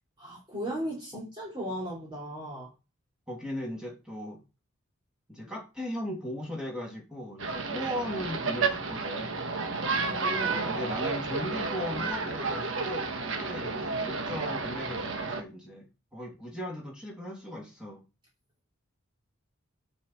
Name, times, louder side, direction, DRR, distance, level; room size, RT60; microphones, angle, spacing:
voice 1, 0.2-2.7 9.9-10.8, equal, 25° right, 3.0 m, -37 dB
voice 2, 3.3-4.4 5.3-9.5 10.6-15.8 16.1-18.0, equal, 5° right, 2.9 m, -37 dB
sound 1, 7.4-15.4, right 4 dB, 70° right, 1.4 m, -31 dB
7.4 x 6.8 x 4.5 m
head